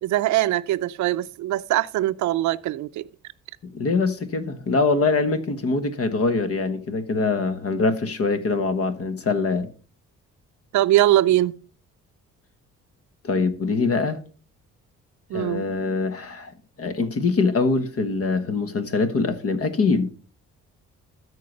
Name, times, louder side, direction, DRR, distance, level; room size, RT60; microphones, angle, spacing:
voice 1, 0.0-3.1 10.7-11.6 15.3-15.6, right 14 dB, 70° right, 0.5 m, -22 dB
voice 2, 3.6-9.7 13.2-14.2 15.3-16.5 16.8-20.1, left 4 dB, 50° left, 1.3 m, -23 dB
13.0 x 4.8 x 5.3 m
cardioid pair, 90°, 30 cm